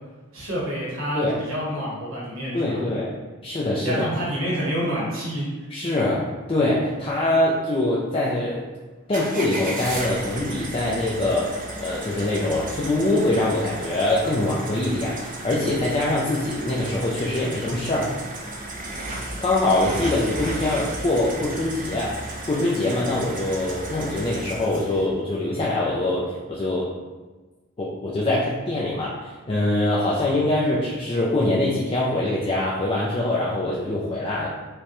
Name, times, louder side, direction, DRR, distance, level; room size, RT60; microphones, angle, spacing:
voice 1, 0.3-2.8 3.8-5.5, equal, 75° right, -6 dB, 1.1 m, -28 dB
voice 2, 2.5-3.1 3.4-4.0 5.7-6.2 6.5-8.7 9.1-18.1 19.4-26.9 27.8-34.5, left 2 dB, 25° left, -6 dB, 0.4 m, -24 dB
sound 1, 9.1-25.1, right 1 dB, 40° right, 0.6 m, -34 dB
5.0 x 2.2 x 3.0 m, 1.2 s
head